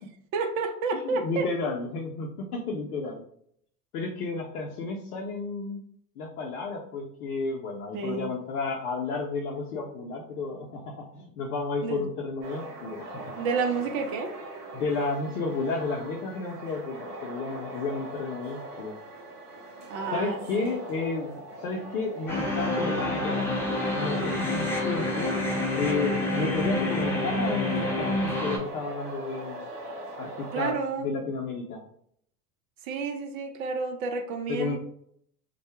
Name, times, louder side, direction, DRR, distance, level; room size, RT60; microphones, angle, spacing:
voice 1, 0.3-1.5 7.9-8.3 11.8-12.1 13.4-14.3 19.9-20.8 30.5-31.1 32.8-34.8, right 4 dB, 60° right, 4 dB, 0.6 m, -30 dB
voice 2, 0.9-3.2 3.9-5.8 6.2-13.2 14.7-19.0 20.1-23.5 23.9-25.4 25.8-29.7 30.2-31.8 34.5-34.8, left 3 dB, 75° left, 0 dB, 0.6 m, -32 dB
sound 1, 12.4-30.7, right 1 dB, 85° right, 0.9 m, -41 dB
sound 2, 22.3-28.6, left 2 dB, 5° left, 0.6 m, -28 dB
2.2 x 2.1 x 2.9 m, 0.67 s
hypercardioid pair, 85°, 46 cm